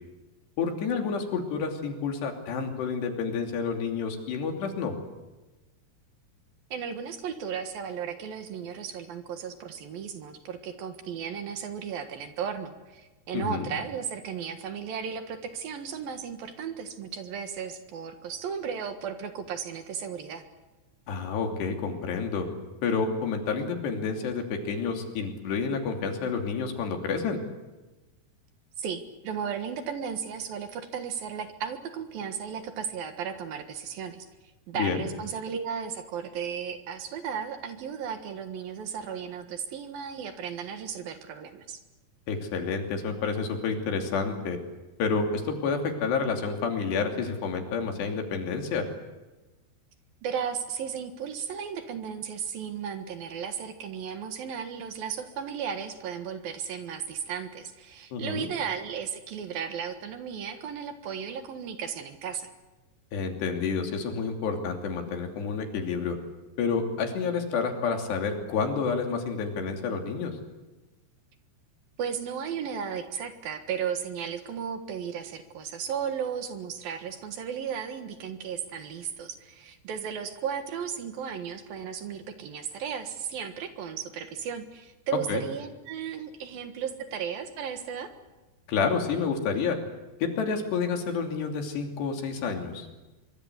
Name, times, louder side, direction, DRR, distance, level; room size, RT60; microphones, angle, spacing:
voice 1, 0.6-4.9 13.3-13.7 21.1-22.5 22.8-27.4 34.7-35.1 42.3-44.6 45.0-48.9 58.1-58.5 63.1-66.2 66.6-70.4 85.3-85.4 88.7-89.8 90.2-92.9, left 5 dB, 75° left, 4 dB, 5.0 m, -29 dB
voice 2, 6.7-20.4 28.8-34.3 34.7-41.8 50.2-62.5 72.0-88.1, right 7 dB, 65° right, 8 dB, 3.1 m, -35 dB
25.0 x 23.5 x 8.1 m, 1.1 s
omnidirectional pair, 4.9 m